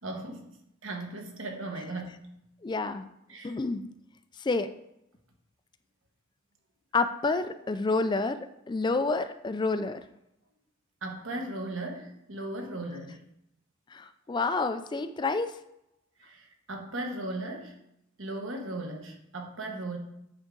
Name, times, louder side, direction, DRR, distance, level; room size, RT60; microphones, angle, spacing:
voice 1, 0.0-0.5 0.8-2.2 3.3-3.5 11.0-13.2 16.2-17.8 18.2-20.0, right 2 dB, 85° right, 3 dB, 1.3 m, -37 dB
voice 2, 2.6-3.1 3.4-3.9 4.4-4.7 6.9-10.0 13.9-15.6, left 3 dB, 20° left, 10 dB, 0.3 m, -29 dB
8.9 x 4.7 x 3.9 m, 0.81 s
head